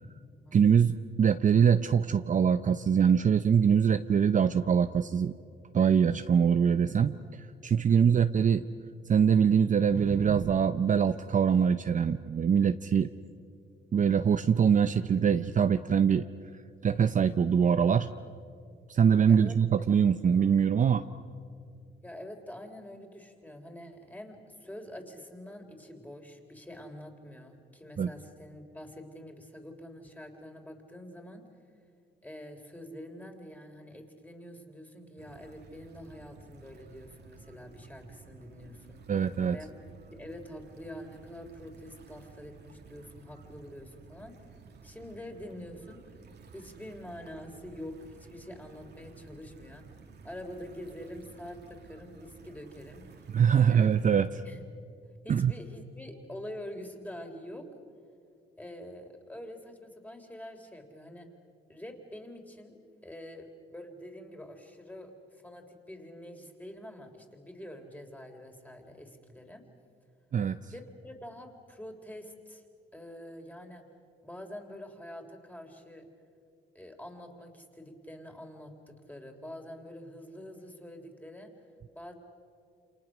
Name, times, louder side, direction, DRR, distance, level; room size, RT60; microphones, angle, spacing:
voice 1, 0.5-5.3 5.7-7.2 7.6-8.6 9.1-13.1 13.9-16.2 16.8-18.1 18.9-21.0 28.0-28.1 39.1-39.6 53.3-54.4 55.3-55.5 70.3-70.6, right 7 dB, 40° right, 10 dB, 0.7 m, -23 dB
voice 2, 7.9-8.2 19.3-19.6 22.0-31.5 32.2-39.0 39.5-39.7 40.1-44.4 44.8-46.0 46.5-53.3 53.6-53.9 54.4-54.6 55.2-57.7 58.6-61.3 61.7-69.6 70.7-72.6 72.9-73.8 74.2-76.0 76.8-81.5 81.9-82.1, left 1 dB, 10° left, 4 dB, 3.6 m, -46 dB
sound 1, 35.2-54.2, right 5 dB, 55° right, 2.1 m, -53 dB
28.5 x 27.5 x 6.3 m, 2.3 s
cardioid pair, 90°, 20 cm